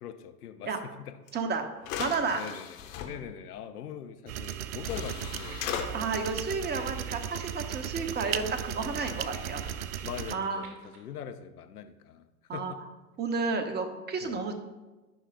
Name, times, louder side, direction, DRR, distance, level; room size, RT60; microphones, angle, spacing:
voice 1, 0.0-1.2 2.3-5.9 10.0-12.8 14.2-14.4, left 9 dB, 80° left, 8 dB, 0.8 m, -42 dB
sound 1, 1.3-1.4 1.8-3.1 4.4-4.5 4.8-5.9, left 8 dB, 60° left, 1.3 m, -36 dB
voice 2, 1.3-1.7 2.0-2.4 5.9-9.6 10.3-10.6 12.5-12.7 13.2-14.5, right 4 dB, 20° right, 7 dB, 1.0 m, -31 dB
sound 2, 4.3-10.3, right 10 dB, 70° right, 0.6 m, -36 dB
sound 3, 5.2-11.0, right 4 dB, 45° right, 2.3 m, -53 dB
13.0 x 5.7 x 2.5 m, 1.1 s
hypercardioid pair, 85°, 45 cm